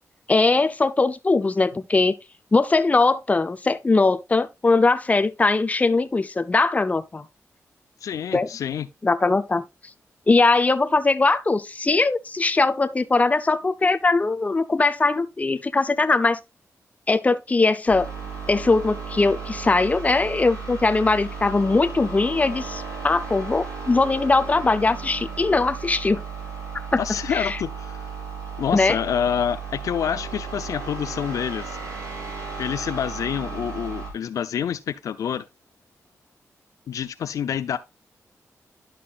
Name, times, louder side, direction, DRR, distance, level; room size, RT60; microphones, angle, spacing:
voice 1, 0.3-2.2 2.5-7.3 8.3-8.5 9.0-9.6 10.3-16.4 17.1-18.1 18.5-26.2 26.9-27.0 27.3-27.6 28.7-29.0, left 3 dB, 25° left, 0.6 m, -20 dB
voice 2, 8.0-8.9 27.0-28.1 28.6-31.8 32.6-35.4 36.9-37.8, left 8 dB, 85° left, 0.5 m, -27 dB
sound 1, 17.9-34.1, right 5 dB, 85° right, 4.5 m, -35 dB
11.5 x 5.8 x 2.4 m
cardioid pair, 75°, 6 cm